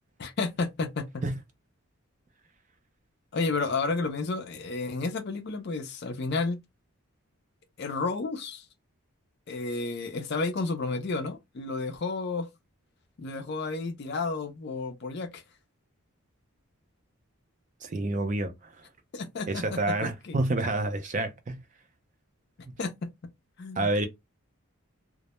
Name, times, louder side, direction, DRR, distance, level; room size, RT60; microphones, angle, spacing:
voice 1, 0.2-1.2 3.3-6.6 7.8-8.7 9.5-12.5 13.2-15.4 19.1-20.4 22.8-23.1 23.6-24.1, left 3 dB, 45° left, 0.4 m, -31 dB
voice 2, 17.8-18.8 19.5-21.6 23.8-24.1, right 2 dB, 35° right, 0.3 m, -28 dB
2.1 x 2.0 x 2.8 m
head